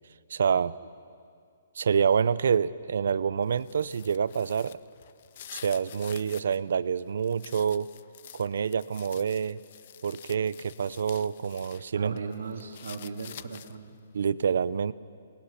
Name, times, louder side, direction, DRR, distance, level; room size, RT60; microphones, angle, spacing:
voice 1, 0.3-0.7 1.8-4.8 5.5-7.9 8.3-9.6 10.0-12.2 14.1-14.9, right 7 dB, 60° right, 18 dB, 0.6 m, -27 dB
sound 1, 3.4-6.6 7.0-11.8 12.2-13.9, left 10 dB, 35° left, 0.5 m, -48 dB
voice 2, 11.9-14.0, right 4 dB, 85° right, 4 dB, 2.1 m, -37 dB
29.0 x 20.0 x 5.9 m, 2.3 s
hypercardioid pair, 175°, 0 cm